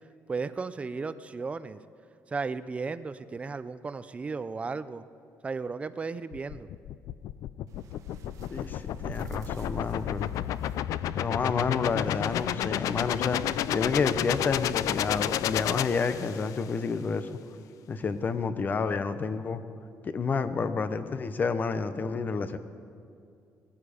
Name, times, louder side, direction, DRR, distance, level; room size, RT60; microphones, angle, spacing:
voice 1, 0.3-1.8 2.3-5.0 5.4-6.7, right 4 dB, 20° right, 13 dB, 0.5 m, -35 dB
sound 1, 6.3-16.6, left 12 dB, 75° left, 0.4 m, -31 dB
sound 2, 7.7-15.4, right 5 dB, 65° right, 1.1 m, -50 dB
voice 2, 8.5-10.3 11.2-13.4 13.7-17.3 17.9-19.6 20.0-22.6, left 5 dB, 30° left, 11 dB, 0.7 m, -29 dB
18.0 x 14.0 x 5.0 m, 2.4 s
cardioid pair, 150°, 6 cm